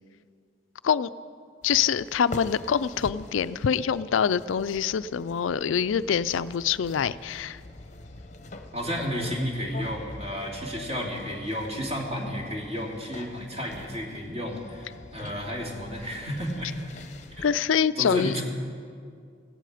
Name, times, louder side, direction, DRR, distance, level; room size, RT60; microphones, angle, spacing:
voice 1, 1.6-7.6 17.4-18.4, left 7 dB, 80° left, 16 dB, 0.4 m, -25 dB
sound 1, 1.6-17.5, left 2 dB, 35° left, 0.8 m, -45 dB
voice 2, 8.7-16.7 17.3-17.5 18.0-18.4, equal, 35° right, -1 dB, 2.6 m, -32 dB
17.0 x 15.5 x 5.0 m, 2.3 s
head